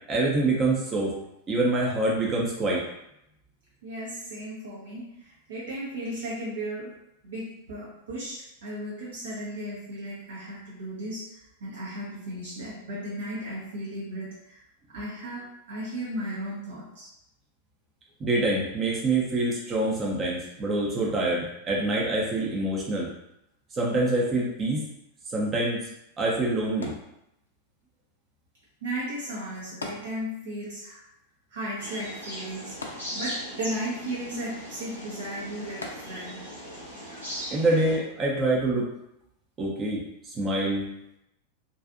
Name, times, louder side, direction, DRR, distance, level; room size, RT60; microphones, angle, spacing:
voice 1, 0.1-1.1 1.5-2.8 18.2-23.1 23.8-24.8 25.3-25.8 26.2-26.9 37.5-38.9 39.6-40.0 40.3-40.8, right 2 dB, 25° right, -3 dB, 0.6 m, -25 dB
voice 2, 3.8-6.9 7.2-11.3 11.6-14.6 14.9-17.1 28.8-31.0 31.5-36.5, right 1 dB, 65° right, -6 dB, 0.6 m, -35 dB
sound 1, 26.8-27.7 29.8-30.7 31.0-31.1 32.8-33.6 35.8-36.5 37.2-37.3, left 3 dB, 75° left, 0.4 m, -41 dB
sound 2, 31.8-38.0, equal, 80° right, 1.1 m, -39 dB
2.6 x 2.3 x 2.5 m, 0.82 s
figure-of-eight pair, 90°, 0 cm